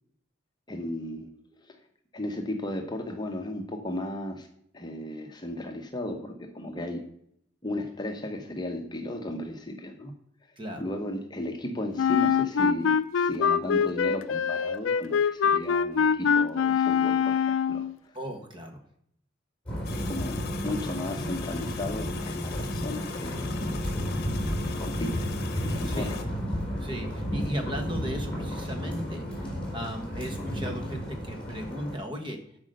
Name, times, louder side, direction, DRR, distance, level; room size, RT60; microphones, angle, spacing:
voice 1, 0.7-1.3 1.6-1.7 2.1-4.5 4.7-7.0 7.6-10.1 10.8-18.1 19.9-23.6 24.7-25.3 25.5-26.2, left 1 dB, 20° left, 4 dB, 0.9 m, -35 dB
voice 2, 10.6-10.9 18.1-18.8 25.8-26.1 26.8-32.4, equal, 25° right, 4 dB, 1.3 m, -36 dB
Wind instrument woodwind instrument, 12.0-17.9, left 7 dB, 90° left, 0.4 m, -24 dB
sound 1, 19.7-31.9, equal, 5° left, 4.1 m, -32 dB
sound 2, 19.8-26.2, left 5 dB, 55° left, 1.0 m, -39 dB
8.1 x 5.2 x 6.5 m, 0.71 s
head